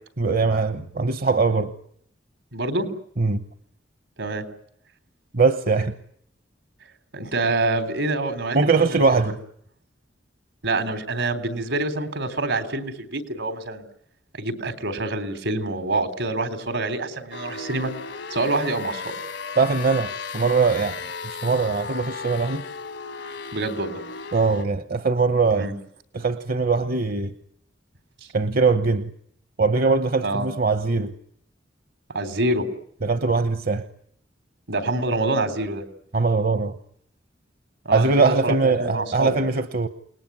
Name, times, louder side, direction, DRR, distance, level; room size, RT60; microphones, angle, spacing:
voice 1, 0.2-1.7 3.2-3.4 5.3-5.9 8.5-9.4 19.6-21.0 21.2-22.6 24.3-25.7 26.1-27.3 28.3-29.1 29.6-31.1 33.0-33.8 36.1-36.7 37.9-39.9, right 4 dB, 55° right, 1.0 m, -21 dB
voice 2, 2.5-2.9 4.2-4.4 7.1-9.0 10.6-13.8 14.3-17.9 18.3-19.0 23.5-24.0 25.5-25.7 30.2-30.5 32.1-32.7 34.7-35.8 37.9-39.4, right 2 dB, 85° right, 3.7 m, -26 dB
sound 1, 17.3-24.7, left 5 dB, 75° left, 1.3 m, -35 dB
29.0 x 20.0 x 9.4 m
head